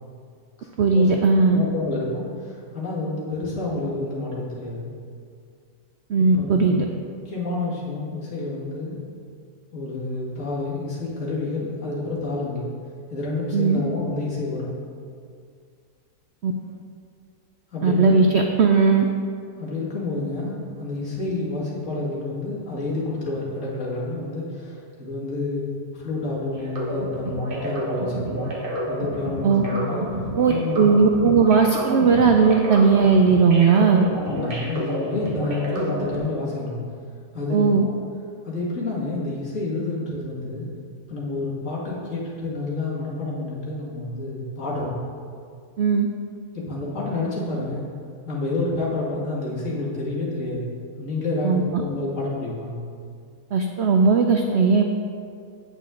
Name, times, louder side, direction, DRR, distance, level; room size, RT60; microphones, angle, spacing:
voice 1, 0.8-1.6 6.1-6.9 13.5-13.8 16.4-16.5 17.8-19.1 29.4-29.6 30.4-34.1 37.5-37.9 45.8-46.1 51.4-51.8 53.5-54.8, right 5 dB, 85° right, 3 dB, 0.5 m, -18 dB
voice 2, 1.4-4.9 6.2-6.8 7.3-9.0 9.7-12.7 13.1-14.8 17.7-18.2 19.6-25.7 25.9-28.5 28.9-30.0 30.5-30.9 34.0-36.8 37.3-37.9 38.4-40.7 41.1-45.0 46.5-47.8 48.3-52.8, left 2 dB, 50° left, -6 dB, 2.2 m, -29 dB
sound 1, 26.5-36.2, right 1 dB, 35° right, 1.3 m, -30 dB
8.5 x 8.1 x 3.7 m, 2.2 s
omnidirectional pair, 1.7 m